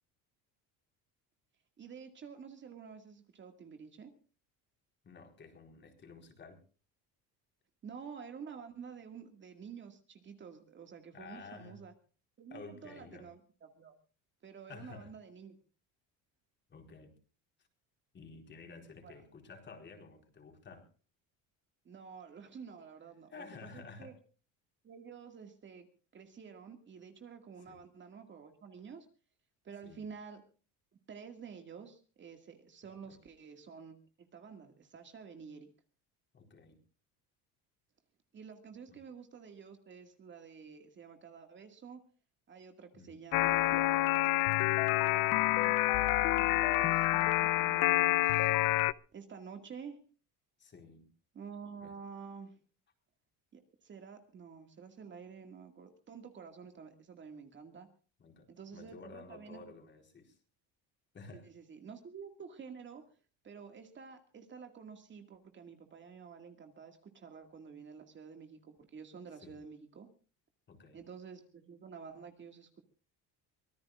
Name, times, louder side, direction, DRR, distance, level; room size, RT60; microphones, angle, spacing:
voice 1, 1.8-4.1 7.8-11.9 12.4-13.9 14.4-15.6 19.0-19.1 21.9-24.1 24.8-25.9 26.1-29.1 29.6-30.4 31.1-35.7 38.3-42.0 42.5-44.0 44.9-45.8 46.2-48.5 49.1-50.0 51.3-52.6 53.5-57.9 58.5-59.7 61.4-63.0 63.4-70.1 70.9-72.8, right 6 dB, 30° right, 5 dB, 2.1 m, -50 dB
voice 2, 5.0-6.6 11.1-11.8 12.5-13.3 14.7-15.1 16.7-17.1 18.1-20.9 23.3-24.2 27.7-27.8 29.8-30.1 33.0-33.2 36.3-36.8 38.9-39.0 42.9-43.2 50.6-51.1 51.8-51.9 58.2-60.4 61.1-61.5 69.4-69.6 70.7-71.0, left 4 dB, 30° left, 4 dB, 4.4 m, -52 dB
sound 1, 43.3-48.9, left 17 dB, 70° left, 0.7 m, -28 dB
24.5 x 18.5 x 2.5 m, 0.39 s
cardioid pair, 150°, 35 cm